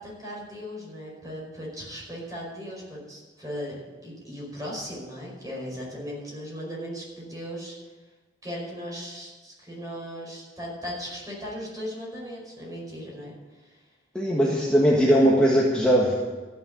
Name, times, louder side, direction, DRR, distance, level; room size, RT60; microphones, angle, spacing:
voice 1, 0.0-7.8 8.4-13.8, equal, 20° right, -4 dB, 5.3 m, -37 dB
voice 2, 14.2-16.2, equal, 5° left, -4 dB, 1.6 m, -20 dB
14.0 x 6.7 x 9.2 m, 1.3 s
head